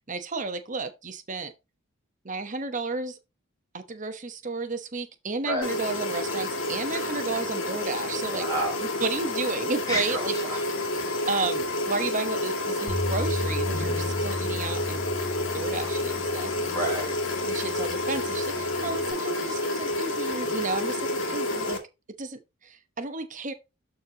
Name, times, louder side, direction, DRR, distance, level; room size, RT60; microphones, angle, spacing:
voice 1, 0.1-1.5 2.2-3.2 3.7-8.5 8.8-10.7 11.3-15.0 15.5-16.8 17.5-21.8 22.2-23.5, right 3 dB, 35° right, 1.0 m, -32 dB
sound 1, 5.6-21.8, left 2 dB, 65° left, 2.3 m, -29 dB
voice 2, 8.3-8.8 9.9-11.3 16.7-17.2, right 1 dB, 15° left, 3.9 m, -31 dB
Bass guitar, 12.9-19.1, left 1 dB, ahead, 5.2 m, -35 dB
12.5 x 4.3 x 2.9 m
head